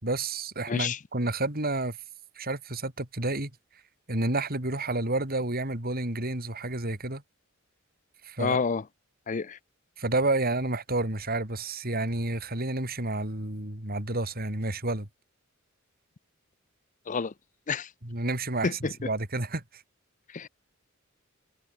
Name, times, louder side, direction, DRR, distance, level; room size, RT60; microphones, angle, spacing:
voice 1, 0.0-2.0 2.4-3.5 4.1-7.2 8.2-8.6 10.0-15.1 18.0-19.8, right 2 dB, 45° right, 4.4 m, -30 dB
voice 2, 0.7-1.0 8.4-8.8 9.3-9.6 17.1-17.3 17.7-17.9 18.6-18.9 20.3-20.5, left 5 dB, 40° left, 0.6 m, -28 dB
head